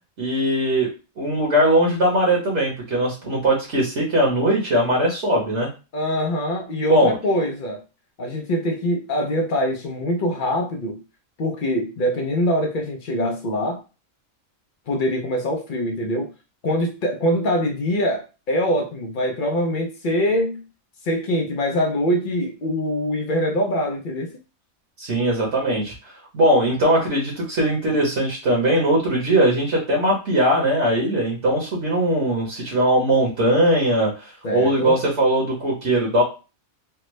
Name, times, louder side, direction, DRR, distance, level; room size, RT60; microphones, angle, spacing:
voice 1, 0.2-0.9 1.2-5.7 6.9-7.1 25.0-36.2, right 1 dB, 60° right, -2 dB, 1.2 m, -20 dB
voice 2, 5.9-7.8 8.2-11.0 11.4-13.8 14.9-16.3 16.6-20.6 21.0-24.4 34.4-35.0, equal, 60° left, 3 dB, 0.5 m, -23 dB
3.4 x 2.0 x 3.0 m, 0.31 s
omnidirectional pair, 1.4 m